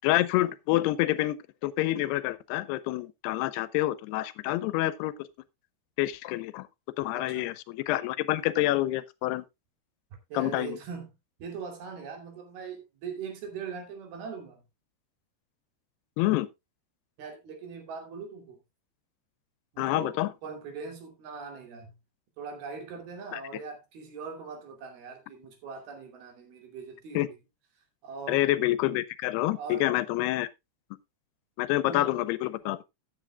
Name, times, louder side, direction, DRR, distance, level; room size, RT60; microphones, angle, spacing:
voice 1, 0.0-1.4 1.6-5.3 6.0-6.7 7.0-9.4 10.3-10.8 16.2-16.5 19.8-20.3 23.3-23.4 27.1-27.3 28.3-30.5 31.6-32.8, left 16 dB, 85° left, 2.8 m, -27 dB
voice 2, 7.1-7.5 10.3-11.1 11.4-14.6 17.2-18.6 19.7-20.1 20.4-21.9 22.4-27.3 28.0-28.4 29.6-29.9 31.9-32.1, right 5 dB, 70° right, 4.5 m, -41 dB
14.5 x 9.5 x 2.3 m
omnidirectional pair, 4.6 m